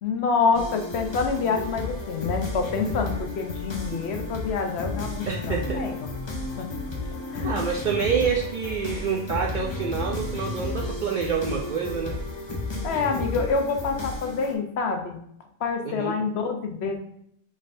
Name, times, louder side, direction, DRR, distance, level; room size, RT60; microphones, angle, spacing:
voice 1, 0.0-6.1 6.6-6.7 7.3-7.6 12.8-15.2 15.6-17.0, left 5 dB, 75° left, 4 dB, 1.0 m, -27 dB
sound 1, 0.5-14.5, left 2 dB, 30° left, 0.6 m, -33 dB
voice 2, 5.3-5.8 7.4-12.2 15.8-16.2, right 6 dB, 60° right, 0 dB, 0.6 m, -27 dB
5.3 x 3.8 x 2.5 m, 0.72 s
omnidirectional pair, 1.1 m